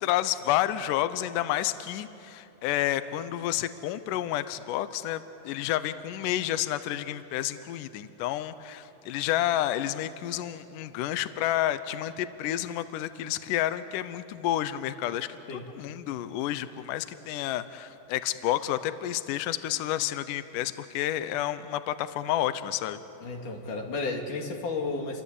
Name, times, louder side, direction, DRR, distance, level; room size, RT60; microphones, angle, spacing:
voice 1, 0.0-23.0, left 13 dB, 85° left, 12 dB, 1.8 m, -30 dB
voice 2, 23.2-25.2, left 3 dB, 55° left, 2 dB, 3.8 m, -32 dB
29.5 x 23.5 x 8.3 m, 2.9 s
omnidirectional pair, 4.6 m